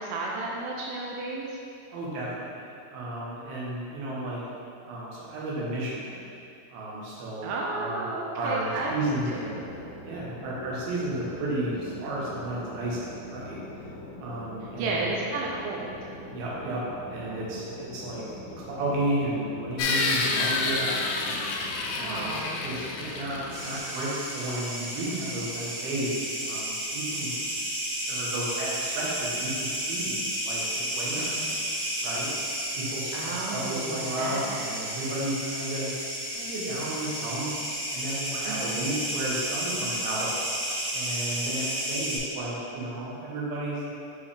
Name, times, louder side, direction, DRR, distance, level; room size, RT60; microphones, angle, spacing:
voice 1, 0.0-1.6 7.4-9.7 11.3-11.8 14.6-16.0 22.0-22.7 31.1-31.6 33.1-34.7 38.5-39.0, right 3 dB, 85° right, -3 dB, 2.8 m, -33 dB
voice 2, 1.9-4.4 4.8-6.2 6.7-8.1 8.3-9.6 10.0-13.6 14.2-15.2 16.3-16.8 17.1-18.2 18.6-21.4 22.0-22.3 22.6-27.3 28.1-31.5 32.0-32.3 32.7-35.9 36.3-40.3 40.9-43.9, right 1 dB, 70° right, -6 dB, 2.9 m, -33 dB
sound 1, 8.7-23.8, left 1 dB, 70° left, 1.9 m, -43 dB
sound 2, 19.8-24.5, left 3 dB, 85° left, 2.2 m, -29 dB
sound 3, 23.5-42.2, right 1 dB, 55° right, 2.1 m, -32 dB
7.2 x 4.7 x 3.4 m, 2.5 s
omnidirectional pair, 4.9 m